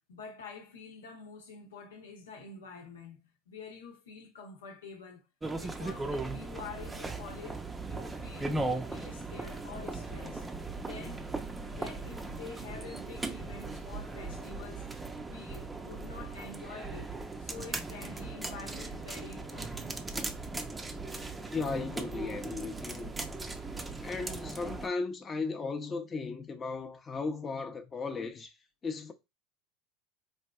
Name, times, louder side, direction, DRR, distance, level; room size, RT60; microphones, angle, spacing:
voice 1, 0.1-5.2 5.6-10.5 10.8-11.2 11.6-20.0, left 5 dB, 85° left, 0.9 m, -47 dB
sound 1, 5.4-24.9, right 3 dB, 15° right, 0.5 m, -38 dB
voice 2, 21.5-23.1 24.0-28.5 28.8-29.1, left 4 dB, 30° left, 0.6 m, -36 dB
4.2 x 2.6 x 2.3 m
hypercardioid pair, 90°, 0 cm